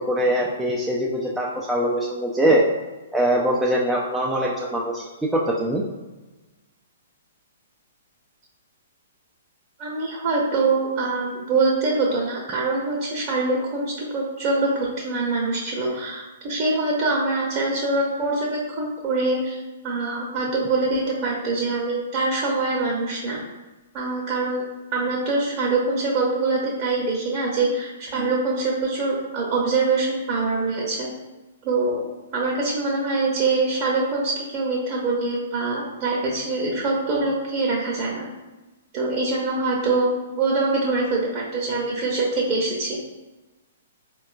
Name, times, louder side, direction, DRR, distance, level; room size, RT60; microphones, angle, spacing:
voice 1, 0.0-2.6 3.1-5.0 5.3-5.8, right 1 dB, 5° right, -4 dB, 0.4 m, -22 dB
voice 2, 9.8-23.4 23.9-24.6 24.9-31.1 31.6-32.0 32.3-38.3 38.9-43.0, right 3 dB, 35° right, -4 dB, 0.8 m, -24 dB
4.2 x 2.3 x 2.3 m, 1.1 s
figure-of-eight pair, 115°, 0 cm